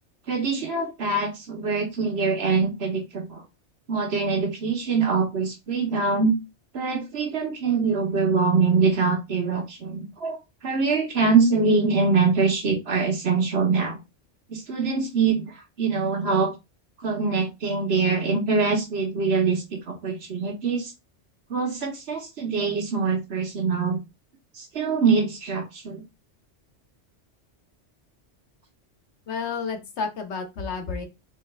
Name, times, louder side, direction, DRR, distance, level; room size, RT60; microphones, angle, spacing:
voice 1, 0.3-3.4 3.9-6.3 6.7-10.4 10.6-14.0 14.5-16.5 17.0-20.9 21.5-24.0 24.6-26.0, right 4 dB, 60° right, 3 dB, 1.2 m, -24 dB
voice 2, 29.3-31.1, left 5 dB, 70° left, 6 dB, 1.1 m, -31 dB
3.3 x 3.1 x 3.2 m, 0.24 s
omnidirectional pair, 1.2 m